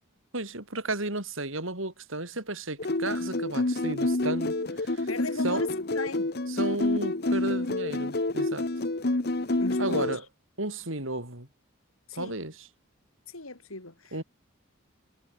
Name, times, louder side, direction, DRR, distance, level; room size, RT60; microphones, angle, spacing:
voice 1, 0.3-5.1 5.4-5.7 6.5-8.7 9.8-10.2 10.6-11.5 12.1-12.7 14.1-14.2, right 2 dB, 70° right, 6.6 m, -33 dB
sound 1, 2.8-10.2, left 2 dB, 50° left, 1.1 m, -28 dB
voice 2, 5.1-5.7 6.0-6.3 9.6-10.1 12.1-12.4 13.3-14.2, left 2 dB, 85° left, 5.4 m, -37 dB
head